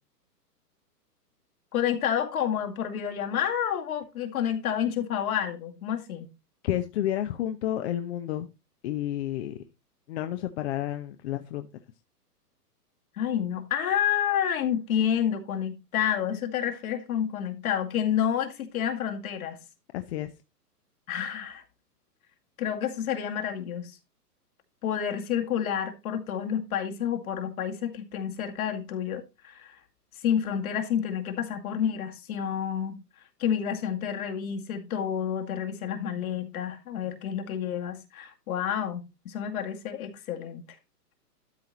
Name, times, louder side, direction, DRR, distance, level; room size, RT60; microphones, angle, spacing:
voice 1, 1.7-6.3 13.2-19.6 21.1-21.6 22.6-24.0 24.8-29.8 30.2-33.0 33.4-40.6, left 9 dB, 60° left, 2.3 m, -29 dB
voice 2, 6.6-8.5 8.8-9.6 10.1-11.7 19.9-20.3, left 12 dB, 45° left, 0.9 m, -30 dB
12.5 x 4.6 x 4.1 m
hypercardioid pair, 130°, 48 cm